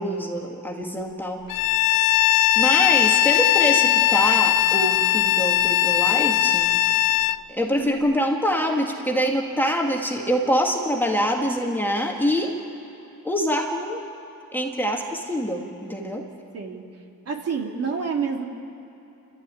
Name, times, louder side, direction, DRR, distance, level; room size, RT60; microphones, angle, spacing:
voice 1, 0.0-1.5 2.6-6.8 7.5-12.6 13.2-14.0 14.5-16.3, equal, 5° left, 0 dB, 2.1 m, -25 dB
Bowed string instrument, 1.5-7.4, left 16 dB, 85° left, 0.5 m, -19 dB
voice 2, 17.2-18.4, right 6 dB, 45° right, 1 dB, 3.0 m, -28 dB
29.0 x 13.5 x 9.8 m, 2.8 s
cardioid pair, 125°, 33 cm